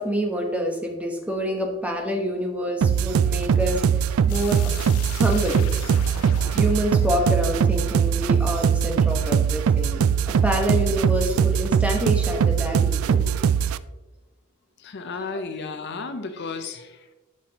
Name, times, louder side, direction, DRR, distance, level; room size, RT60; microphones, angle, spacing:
voice 1, 0.0-3.8 4.3-4.7 5.1-5.6 6.5-13.3 15.2-15.4, equal, 5° right, 1 dB, 1.1 m, -27 dB
sound 1, 2.8-13.8, right 7 dB, 70° right, 0.3 m, -21 dB
sound 2, 4.3-9.0, left 6 dB, 85° left, 0.8 m, -41 dB
voice 2, 14.8-17.0, left 4 dB, 50° left, 8 dB, 0.5 m, -33 dB
12.0 x 6.0 x 2.9 m, 1.2 s
head